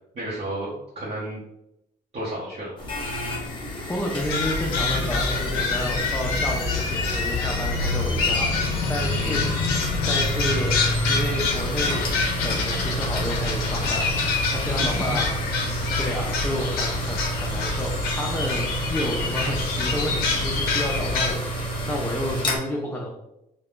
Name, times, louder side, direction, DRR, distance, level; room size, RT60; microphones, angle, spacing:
voice 1, 0.1-1.4 2.1-2.8 9.2-9.4 14.6-15.2, right 1 dB, 40° right, -8 dB, 0.9 m, -32 dB
sound 1, 2.8-22.6, equal, 30° left, 1.0 m, -30 dB
voice 2, 3.9-8.6 8.9-9.4 10.1-10.7 11.1-14.2 14.5-15.4 15.6-23.1, equal, 10° left, -2 dB, 0.4 m, -30 dB
sound 2, 4.2-21.4, left 4 dB, 90° left, 0.5 m, -26 dB
3.2 x 2.2 x 2.4 m, 0.85 s
cardioid pair, 95°, 16 cm